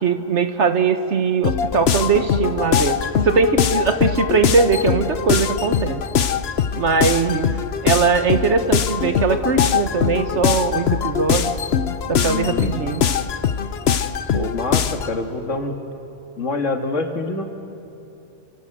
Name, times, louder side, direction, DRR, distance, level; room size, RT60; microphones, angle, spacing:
voice 1, 0.0-3.0 3.2-6.0 6.7-7.5 7.8-11.5 12.1-13.0, right 5 dB, 70° right, 8 dB, 1.6 m, -20 dB
sound 1, 1.4-15.1, left 8 dB, 60° left, 1.0 m, -22 dB
voice 2, 12.3-12.7 14.3-15.8 16.4-17.4, left 3 dB, 90° left, 4 dB, 2.3 m, -25 dB
28.0 x 24.0 x 8.0 m, 2.8 s
omnidirectional pair, 1.2 m